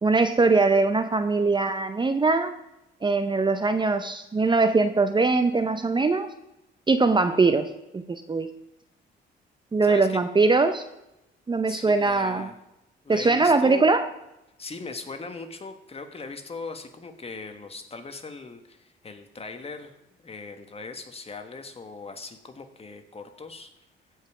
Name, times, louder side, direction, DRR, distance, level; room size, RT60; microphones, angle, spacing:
voice 1, 0.0-2.5 3.0-6.3 6.9-7.7 7.9-8.5 9.7-10.8 11.5-12.5 13.1-14.1, right 3 dB, 25° right, 9 dB, 0.6 m, -21 dB
voice 2, 9.8-10.2 11.7-12.6 13.0-13.9 14.6-19.9 20.2-23.7, left 4 dB, 30° left, 7 dB, 1.5 m, -39 dB
16.0 x 5.5 x 4.9 m, 0.89 s
cardioid pair, 90°, 20 cm